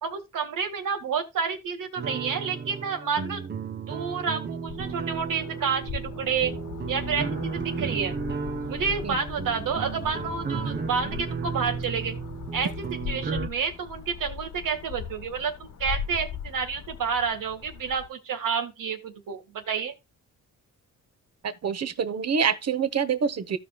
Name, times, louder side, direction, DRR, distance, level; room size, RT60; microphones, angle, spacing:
voice 1, 0.0-3.4 3.9-6.6 6.9-8.2 8.7-12.2 12.5-12.7 13.1-19.9, right 6 dB, 80° right, 1.9 m, -29 dB
sound 1, 2.0-13.5, right 5 dB, 35° right, 0.8 m, -34 dB
sound 2, 4.7-18.1, left 7 dB, 70° left, 1.5 m, -39 dB
voice 2, 21.4-23.6, right 6 dB, 50° right, 1.1 m, -26 dB
15.0 x 5.2 x 2.3 m
cardioid pair, 90°, 32 cm